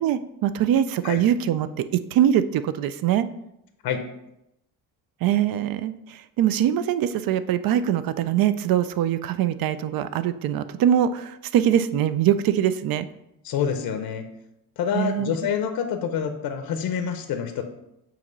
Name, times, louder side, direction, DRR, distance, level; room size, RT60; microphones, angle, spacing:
voice 1, 0.0-1.8 2.1-3.3 5.2-13.1 14.9-15.4, right 10 dB, 75° right, 13 dB, 0.5 m, -23 dB
voice 2, 13.4-14.2 14.8-17.6, left 8 dB, 80° left, 7 dB, 0.7 m, -27 dB
7.5 x 3.0 x 5.3 m, 0.85 s
cardioid pair, 165°, 35 cm